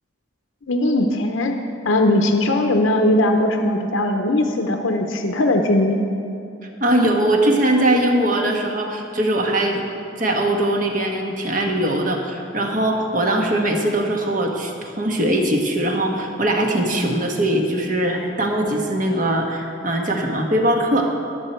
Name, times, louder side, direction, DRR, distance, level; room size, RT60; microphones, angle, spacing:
voice 1, 0.7-1.5 1.8-6.0, left 1 dB, 75° left, 4 dB, 0.8 m, -19 dB
voice 2, 6.8-9.8 10.2-21.1, right 1 dB, 40° right, 2 dB, 1.4 m, -21 dB
18.5 x 7.4 x 4.5 m, 2.7 s
head